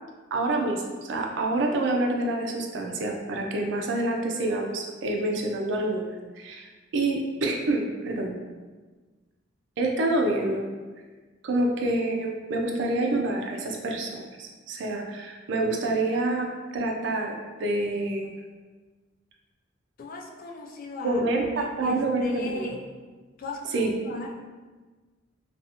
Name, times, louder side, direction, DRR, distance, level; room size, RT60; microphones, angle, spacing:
voice 1, 0.3-6.7 6.9-8.3 9.8-10.7 11.4-18.3 21.0-22.7 23.7-23.9, right 2 dB, 65° right, 1 dB, 0.4 m, -27 dB
voice 2, 20.0-22.8 23.4-24.3, left 2 dB, 45° left, 1 dB, 0.3 m, -37 dB
2.4 x 2.3 x 2.7 m, 1.3 s
head